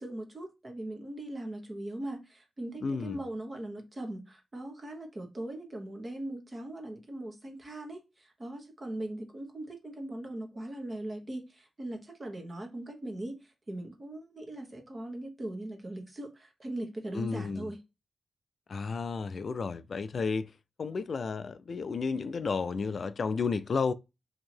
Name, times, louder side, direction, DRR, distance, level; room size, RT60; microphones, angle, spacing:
voice 1, 0.0-17.8, right 1 dB, 30° right, 1.1 m, -40 dB
voice 2, 2.8-3.2 17.1-17.7 18.7-23.9, left 4 dB, 55° left, 0.3 m, -32 dB
2.9 x 2.7 x 4.3 m
cardioid pair, 90°, 0 cm